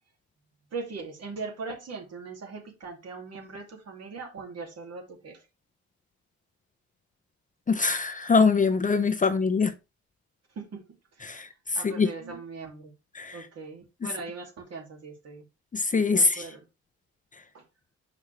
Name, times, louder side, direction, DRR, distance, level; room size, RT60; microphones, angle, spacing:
voice 1, 0.7-5.5 10.5-10.8 11.1-11.5 11.7-12.9 13.3-15.4 16.1-16.6 17.5-17.6, right 4 dB, 55° right, 2.4 m, -40 dB
voice 2, 7.7-9.7 11.2-12.1 13.1-13.4 15.7-16.5, left 4 dB, 25° left, 0.6 m, -23 dB
6.1 x 5.6 x 3.2 m
cardioid pair, 90°, 30 cm